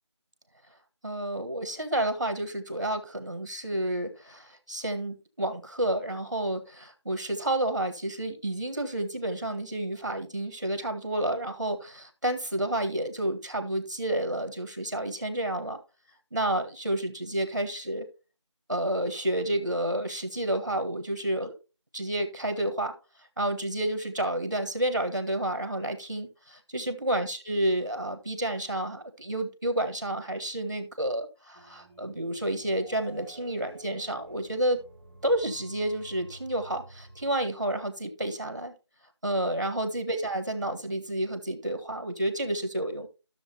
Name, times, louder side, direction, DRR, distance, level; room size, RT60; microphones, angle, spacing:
voice 1, 1.0-15.8 16.3-18.1 18.7-21.5 21.9-22.9 23.4-34.8 35.2-38.7 39.2-43.1, right 1 dB, 40° right, 7 dB, 1.7 m, -30 dB
sound 1, 31.5-37.3, right 2 dB, 20° right, 1.3 m, -50 dB
13.5 x 7.1 x 2.9 m, 0.31 s
figure-of-eight pair, 180°, 16 cm